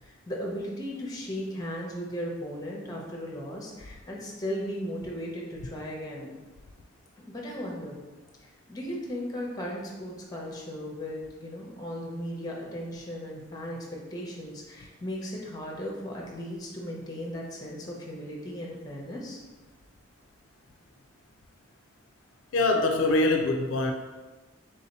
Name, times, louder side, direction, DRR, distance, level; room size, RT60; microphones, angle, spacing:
voice 1, 0.0-6.3 7.2-8.0 8.4-19.4, equal, 20° left, -2 dB, 0.6 m, -36 dB
voice 2, 22.5-23.9, left 2 dB, 65° left, 3 dB, 0.4 m, -23 dB
3.6 x 2.7 x 4.1 m, 1.2 s
head